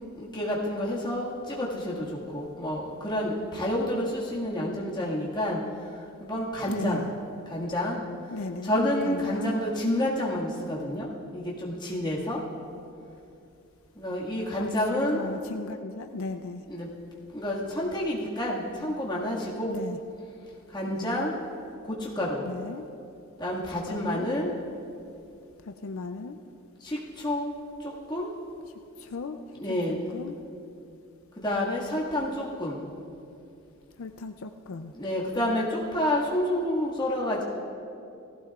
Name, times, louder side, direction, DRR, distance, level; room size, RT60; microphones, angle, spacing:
voice 1, 0.2-2.1 2.3-5.6 6.2-7.0 7.5-8.0 8.6-12.4 14.0-15.2 16.7-16.9 17.3-19.7 20.7-21.3 21.9-22.4 23.4-24.5 26.8-27.5 27.8-28.3 29.5-30.0 31.4-32.8 34.9-37.4, left 1 dB, 20° left, -5 dB, 1.8 m, -29 dB
voice 2, 6.7-7.1 8.3-9.6 14.6-14.7 15.1-16.6 19.6-20.0 20.9-21.2 22.4-22.9 23.9-24.4 25.6-26.4 29.0-29.4 29.7-29.8 30.1-30.4 34.0-34.9, left 3 dB, 70° left, 7 dB, 0.5 m, -37 dB
18.0 x 15.5 x 2.4 m, 2.6 s
head